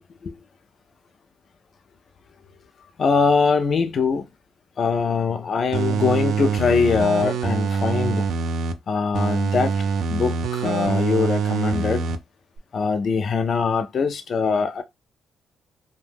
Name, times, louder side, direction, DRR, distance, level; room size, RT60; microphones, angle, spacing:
voice 1, 3.0-4.3 4.8-8.3 8.9-9.8 10.1-12.1 12.7-14.8, left 5 dB, 50° left, 0.4 m, -22 dB
sound 1, 5.7-8.7 9.1-12.2 12.6-12.7, right 5 dB, 75° right, 0.4 m, -24 dB
2.6 x 2.1 x 3.3 m
cardioid pair, 90°, 0 cm